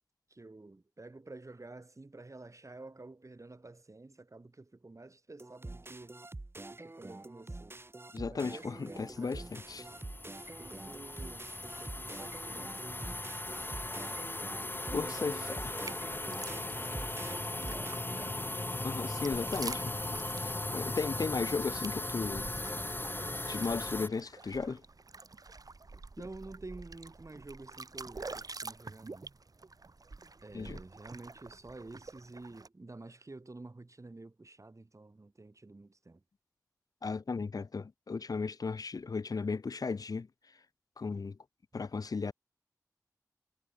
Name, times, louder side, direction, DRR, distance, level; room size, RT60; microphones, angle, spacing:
voice 1, 0.3-6.2 6.7-7.8 8.2-9.5 10.6-11.5 11.8-14.4 14.8-17.1 26.2-29.3 30.4-36.2, right 2 dB, 55° right, 6.7 m, -50 dB
sound 1, 5.4-18.3, right 2 dB, 40° right, 1.2 m, -46 dB
voice 2, 8.1-9.8 14.9-15.7 18.8-20.0 20.3-22.5 23.5-24.8 30.5-30.8 37.0-40.3 41.0-41.4 41.7-42.3, left 4 dB, 75° left, 0.5 m, -35 dB
sound 2, 8.9-24.1, left 2 dB, 35° left, 1.8 m, -38 dB
sound 3, 15.8-32.7, right 3 dB, 75° right, 3.4 m, -48 dB
wide cardioid pair, 45°, 6 cm